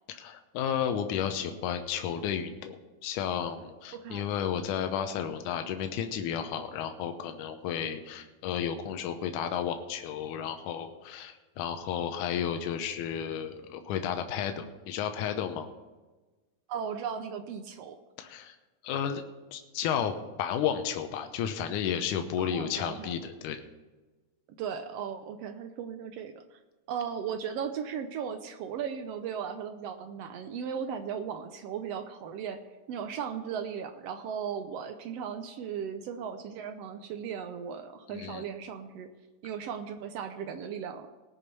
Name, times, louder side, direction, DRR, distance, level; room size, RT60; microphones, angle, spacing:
voice 1, 0.1-15.7 18.2-18.6 18.8-19.2 19.5-23.6 38.1-38.4, left 8 dB, 80° left, 7 dB, 2.3 m, -32 dB
voice 2, 3.9-4.3 16.7-18.0 22.4-23.1 24.6-26.6 26.9-32.6 32.9-39.1 39.4-41.1, right 7 dB, 80° right, 7 dB, 1.4 m, -37 dB
19.0 x 6.5 x 5.4 m, 1.2 s
omnidirectional pair, 3.7 m